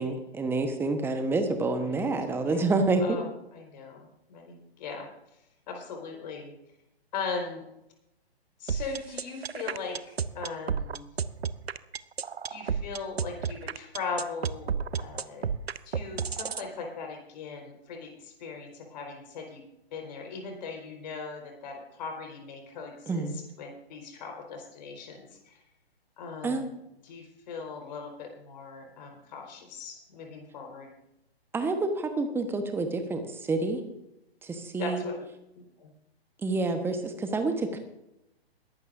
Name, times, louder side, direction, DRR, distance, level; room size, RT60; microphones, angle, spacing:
voice 1, 0.0-3.2 23.1-23.3 26.4-26.7 31.5-33.8 34.4-35.0 36.4-37.8, right 3 dB, 5° right, 7 dB, 1.2 m, -28 dB
voice 2, 1.9-2.7 3.0-5.1 5.7-6.5 7.1-7.6 8.6-11.1 12.5-15.5 15.9-19.6 19.9-23.3 23.6-25.3 26.2-26.8 27.0-30.9 34.8-35.1 35.8-35.9, left 4 dB, 45° left, 1 dB, 4.5 m, -39 dB
sound 1, 8.7-16.7, right 6 dB, 75° right, 0.7 m, -31 dB
22.0 x 12.0 x 2.6 m, 0.85 s
figure-of-eight pair, 130°, 31 cm